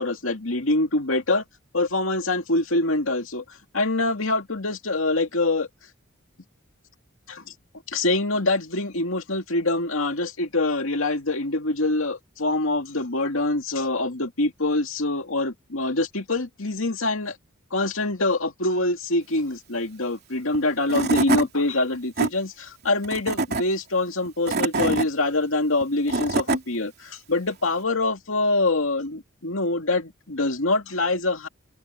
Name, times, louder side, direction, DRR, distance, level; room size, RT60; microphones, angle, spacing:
voice 1, 0.0-1.4 1.7-3.4 3.7-5.7 7.3-7.5 7.9-17.4 17.7-31.5, left 2 dB, 75° left, 2.5 m, -25 dB
Tools / Wood, 20.5-20.6 20.9-21.5 21.9-22.3 23.0-23.6 24.2-25.1 25.8-26.6, right 3 dB, 50° right, 3.2 m, -24 dB
open air
head